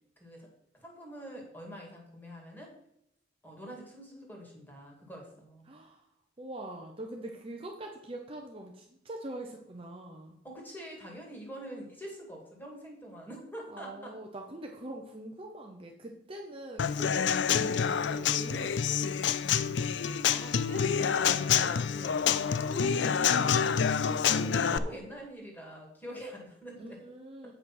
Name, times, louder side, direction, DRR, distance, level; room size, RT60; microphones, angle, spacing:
voice 1, 0.2-0.5 0.7-2.7 3.4-5.7 10.4-14.1 17.6-17.9 20.3-23.9 24.2-27.0 27.4-27.5, equal, 10° left, -1 dB, 2.2 m, -45 dB
voice 2, 5.6-6.0 6.4-10.4 13.7-19.0 26.8-27.5, right 1 dB, 30° right, 2 dB, 0.8 m, -43 dB
Human voice / Acoustic guitar / Drum, 16.8-24.8, left 7 dB, 70° left, 0.4 m, -27 dB
8.0 x 5.7 x 5.9 m, 0.77 s
head